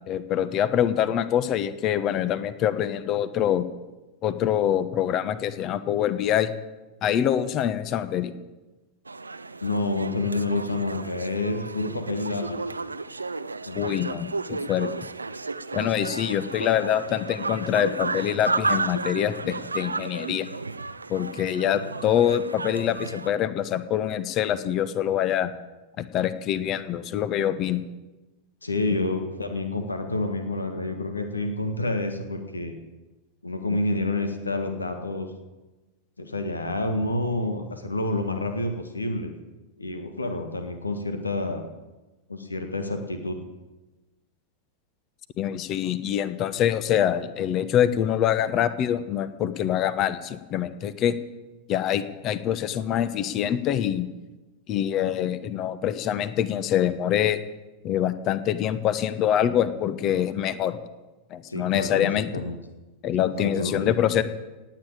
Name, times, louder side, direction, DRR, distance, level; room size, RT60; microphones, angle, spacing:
voice 1, 0.1-3.7 4.2-6.5 7.0-8.3 13.7-14.9 15.7-20.5 21.1-25.5 26.0-27.8 45.4-51.1 51.7-54.1 54.7-57.4 57.8-60.8 61.3-62.3 63.0-64.2, left 10 dB, 35° left, 13 dB, 1.1 m, -25 dB
sound 1, 9.1-23.3, right 3 dB, 80° right, 0.6 m, -33 dB
voice 2, 9.6-12.6 13.7-14.1 28.6-32.8 33.4-35.3 36.2-39.3 39.8-41.6 42.3-43.4 61.5-62.6 63.2-64.0, left 2 dB, 80° left, 7 dB, 1.8 m, -28 dB
18.0 x 9.1 x 8.7 m, 1.1 s
figure-of-eight pair, 90°, 0 cm